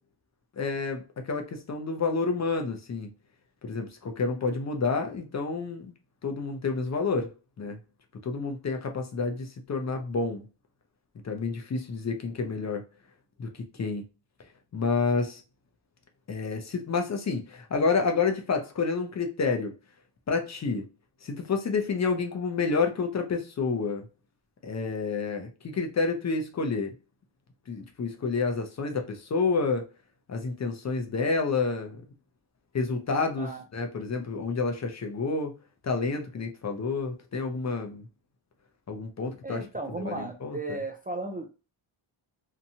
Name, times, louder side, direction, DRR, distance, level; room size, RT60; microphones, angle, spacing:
voice 1, 0.6-3.1 3.6-5.9 6.2-7.3 7.6-7.8 8.2-10.5 11.2-12.8 13.4-14.0 14.7-15.4 16.3-19.7 20.3-20.9 21.2-24.1 24.6-26.9 27.7-29.9 30.3-32.0 32.7-35.5 35.8-38.1 38.9-40.8, left 4 dB, 35° left, 0.6 m, -29 dB
voice 2, 39.4-41.5, right 2 dB, 20° right, 0.4 m, -35 dB
2.8 x 2.2 x 2.7 m
cardioid pair, 80°, 50 cm